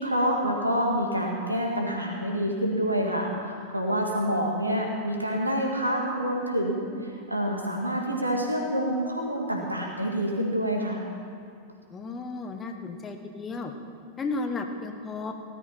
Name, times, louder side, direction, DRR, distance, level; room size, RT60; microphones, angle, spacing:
voice 1, 0.0-11.1, equal, 85° right, 1 dB, 2.1 m, -27 dB
voice 2, 11.9-13.7 14.2-15.3, left 3 dB, 20° left, 5 dB, 1.2 m, -33 dB
17.0 x 13.0 x 4.4 m, 2.2 s
figure-of-eight pair, 90°, 0 cm